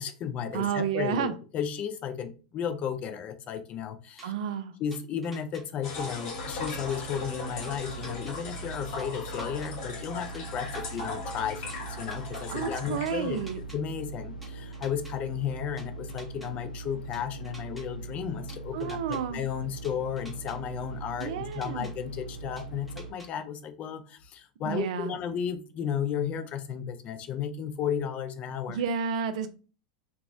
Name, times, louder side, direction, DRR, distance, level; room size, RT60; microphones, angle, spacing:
voice 1, 0.0-4.3 4.8-13.4 13.7-28.8, left 8 dB, 30° left, 8 dB, 0.4 m, -34 dB
voice 2, 0.5-1.3 4.2-4.7 12.3-13.6 18.7-19.4 21.2-21.9 24.6-25.1 28.7-29.5, right 7 dB, 55° right, 10 dB, 0.4 m, -31 dB
sound 1, 4.2-4.3 4.9-5.6 6.3-7.0 7.6-8.3 9.0-9.7 10.3-11.1 11.7-12.4 13.1-13.8 14.4-15.1 15.8-16.5 17.1-17.8 18.5-19.2 19.8-20.6 21.2-21.9 22.6-23.3, right 1 dB, ahead, 0.9 m, -49 dB
sound 2, 5.8-13.6, left 3 dB, 45° left, 0.8 m, -38 dB
sound 3, 6.4-23.1, right 3 dB, 85° left, 0.6 m, -41 dB
2.9 x 2.2 x 2.6 m, 0.36 s
figure-of-eight pair, 90°, 4 cm